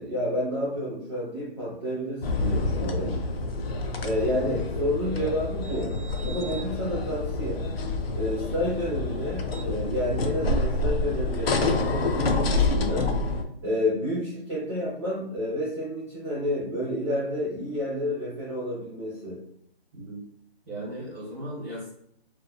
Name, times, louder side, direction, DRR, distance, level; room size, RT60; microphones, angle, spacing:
voice 1, 0.0-3.2 4.0-6.0 6.2-7.6 8.1-13.1 13.6-19.4, equal, 30° right, -8 dB, 0.5 m, -30 dB
sound 1, 2.2-13.4, left 2 dB, 70° left, 0.5 m, -27 dB
voice 2, 19.9-20.2 20.6-21.9, right 1 dB, ahead, -14 dB, 1.1 m, -37 dB
3.0 x 2.1 x 2.2 m, 0.71 s
hypercardioid pair, 165°, 31 cm